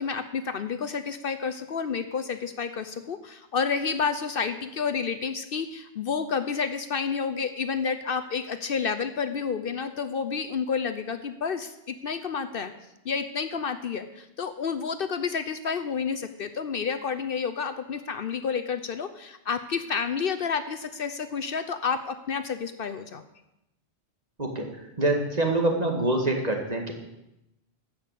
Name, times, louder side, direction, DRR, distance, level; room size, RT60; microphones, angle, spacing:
voice 1, 0.0-12.7 13.0-23.2, left 6 dB, 60° left, 11 dB, 0.9 m, -30 dB
voice 2, 25.0-26.9, right 2 dB, 35° right, 2 dB, 2.1 m, -25 dB
13.5 x 6.3 x 8.3 m, 0.88 s
omnidirectional pair, 1.1 m